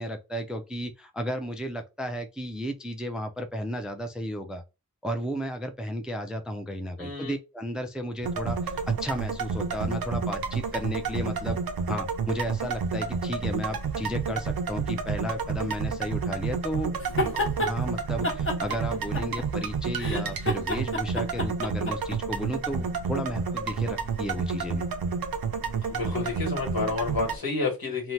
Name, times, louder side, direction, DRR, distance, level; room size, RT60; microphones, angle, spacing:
voice 1, 0.0-4.6 5.0-11.6 11.9-16.9 17.6-24.9, equal, ahead, 0.4 m, -33 dB
voice 2, 7.0-7.3 17.1-17.4 25.9-28.1, left 4 dB, 80° left, 1.3 m, -30 dB
sound 1, 8.2-27.4, right 5 dB, 80° right, 0.5 m, -30 dB
sound 2, 17.0-17.7 18.2-19.6 20.0-22.2, left 1 dB, 35° left, 0.7 m, -29 dB
2.7 x 2.1 x 3.1 m
wide cardioid pair, 70°, 35 cm